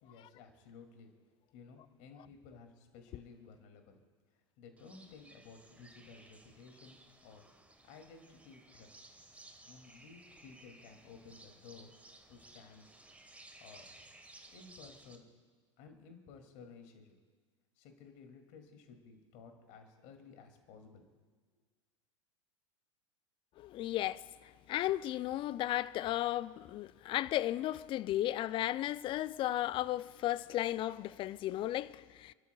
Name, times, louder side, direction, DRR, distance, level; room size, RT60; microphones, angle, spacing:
voice 1, 0.0-1.1 1.5-4.0 4.3-7.4 7.8-8.9 9.7-13.0 13.6-13.9 14.5-15.3 15.8-17.2 17.8-21.0, left 5 dB, 50° left, 2.5 m, -55 dB
sound 1, 4.8-15.2, right 2 dB, 10° right, 1.3 m, -58 dB
voice 2, 23.6-32.3, left 14 dB, 30° left, 0.4 m, -35 dB
29.5 x 12.5 x 2.3 m
figure-of-eight pair, 90°, 16 cm